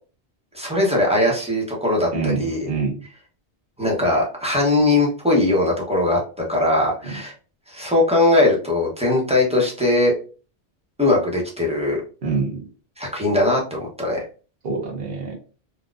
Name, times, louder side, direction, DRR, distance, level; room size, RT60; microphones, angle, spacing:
voice 1, 0.5-2.7 3.8-6.2 6.5-7.3 7.7-10.1 11.0-12.0 13.0-14.2, left 2 dB, 5° right, -3 dB, 0.8 m, -20 dB
voice 2, 2.1-3.0 12.2-12.6 14.6-15.3, right 4 dB, 60° right, 0 dB, 1.2 m, -25 dB
3.8 x 2.2 x 2.4 m, 0.37 s
omnidirectional pair, 1.1 m